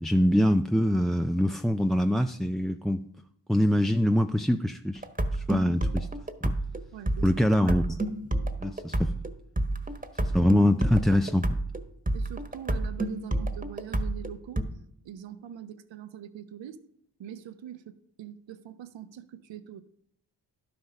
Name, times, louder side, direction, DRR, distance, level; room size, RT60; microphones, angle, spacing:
voice 1, 0.0-3.0 3.5-5.0 5.3-6.1 6.4-6.5 7.2-8.0 8.6-9.1 10.2-11.6, left 1 dB, ahead, 0.4 m, -24 dB
sound 1, 5.0-14.6, right 1 dB, 20° right, 1.3 m, -29 dB
voice 2, 6.9-7.5 10.0-10.4 12.1-14.6 15.0-16.8 17.2-19.8, right 10 dB, 75° right, 0.9 m, -43 dB
11.5 x 6.0 x 5.3 m
supercardioid pair, 40°, 45 cm